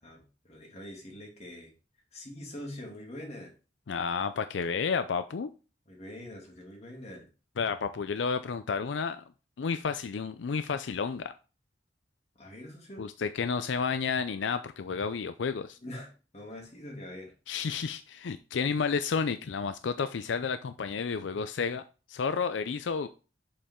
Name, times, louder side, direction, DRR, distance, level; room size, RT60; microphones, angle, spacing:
voice 1, 0.0-1.7 2.1-3.5 5.9-7.3 12.4-13.0 15.8-17.3, left 1 dB, 35° left, 0 dB, 2.5 m, -44 dB
voice 2, 3.9-5.5 7.6-9.2 9.6-11.3 13.0-15.8 17.5-21.8 22.1-23.1, left 5 dB, 85° left, 11 dB, 0.5 m, -31 dB
6.9 x 5.4 x 3.7 m, 0.33 s
head